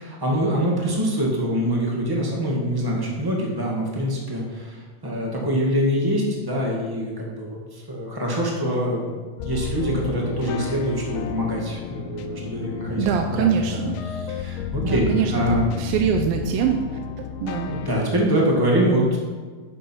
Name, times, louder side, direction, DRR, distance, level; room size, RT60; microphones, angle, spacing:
voice 1, 0.0-9.2 9.4-15.7 17.7-19.2, equal, 15° right, -2 dB, 0.9 m, -24 dB
sound 1, 9.4-18.1, left 7 dB, 80° left, 2.2 m, -32 dB
voice 2, 13.0-14.0 14.8-16.8 17.4-17.7, right 7 dB, 90° right, 4 dB, 2.4 m, -23 dB
11.0 x 7.9 x 4.6 m, 1.5 s
omnidirectional pair, 4.0 m